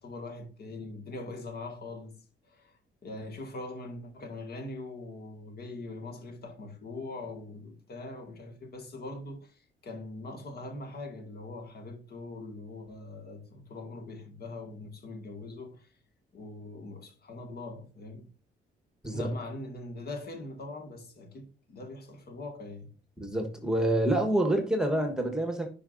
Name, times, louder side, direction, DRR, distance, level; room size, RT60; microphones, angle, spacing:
voice 1, 0.0-2.1 2.4-16.0 16.3-18.3 19.0-22.9, left 2 dB, 55° left, 1.9 m, -42 dB
voice 2, 23.2-25.7, right 1 dB, 5° right, 1.4 m, -27 dB
10.5 x 4.8 x 2.6 m
cardioid pair, 90°, 20 cm